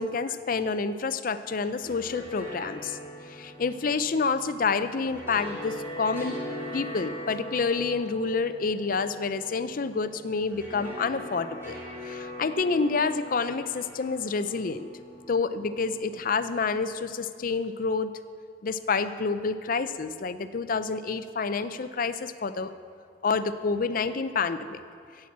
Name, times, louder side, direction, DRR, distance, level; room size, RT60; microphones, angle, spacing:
voice 1, 0.0-3.0 3.3-6.4 6.7-11.7 12.0-14.9 15.3-18.1 18.6-22.7 23.2-24.8, left 4 dB, 50° left, 12 dB, 0.5 m, -28 dB
sound 1, 1.8-16.8, left 1 dB, 15° right, 3.6 m, -41 dB
10.5 x 8.6 x 7.3 m, 2.3 s
head